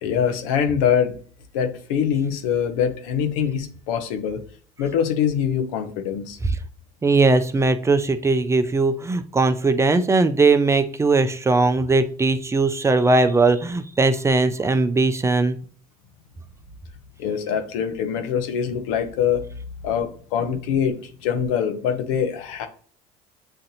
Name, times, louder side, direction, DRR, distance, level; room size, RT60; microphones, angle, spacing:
voice 1, 0.0-1.2 1.5-4.4 4.8-6.4 17.2-19.4 19.8-22.7, left 8 dB, 85° left, 7 dB, 0.9 m, -23 dB
voice 2, 7.0-15.6, right 3 dB, 15° right, 10 dB, 0.4 m, -19 dB
7.6 x 2.5 x 2.8 m, 0.42 s
supercardioid pair, 90°, 16 cm